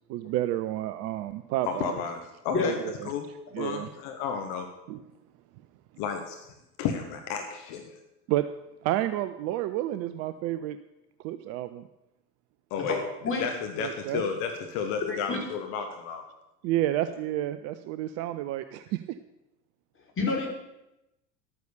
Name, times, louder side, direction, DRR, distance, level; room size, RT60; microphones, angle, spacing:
voice 1, 0.1-2.0 2.6-3.1 3.5-3.9 4.9-5.0 8.3-8.4 8.8-10.8 11.2-11.8 13.8-14.2 16.6-19.0, right 14 dB, 30° right, 11 dB, 0.5 m, -30 dB
voice 2, 1.6-2.8 3.0-3.3 3.6-4.7 6.0-8.0 12.7-13.0 13.3-16.3, left 6 dB, 45° left, 5 dB, 1.4 m, -32 dB
voice 3, 15.1-15.4 20.2-20.5, left 4 dB, 25° left, 1 dB, 3.5 m, -28 dB
12.5 x 9.2 x 6.6 m, 0.91 s
figure-of-eight pair, 75°, 50 cm